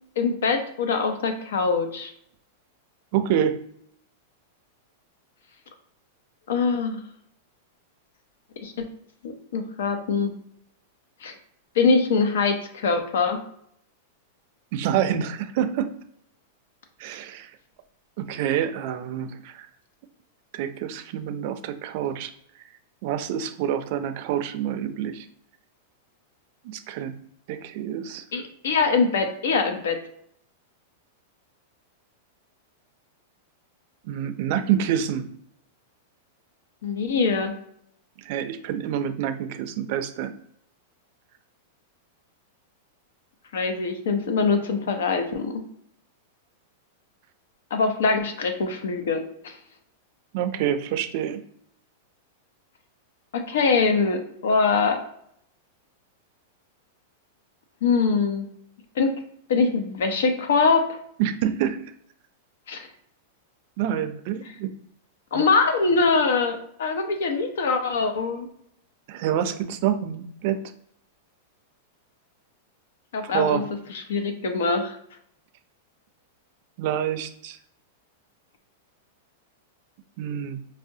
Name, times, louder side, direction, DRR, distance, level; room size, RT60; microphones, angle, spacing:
voice 1, 0.2-2.1 6.5-7.0 8.6-8.8 9.2-10.3 11.2-11.3 11.8-13.4 28.3-30.0 36.8-37.5 43.5-45.6 47.7-49.5 53.3-55.0 57.8-58.5 59.0-59.1 59.5-61.0 62.7-62.9 65.3-68.5 73.1-73.6 73.9-75.0, left 4 dB, 80° left, 6 dB, 0.6 m, -23 dB
voice 2, 3.1-3.6 14.7-15.9 17.0-17.5 18.2-19.7 20.5-22.3 23.0-25.3 26.6-27.1 27.5-28.2 34.0-35.3 38.2-40.3 50.3-51.4 61.2-61.8 63.8-64.7 65.3-65.4 69.1-70.6 73.2-73.6 76.8-77.6 80.2-80.6, right 9 dB, 50° right, 8 dB, 0.4 m, -27 dB
4.9 x 2.0 x 2.7 m, 0.70 s
supercardioid pair, 155°, 0 cm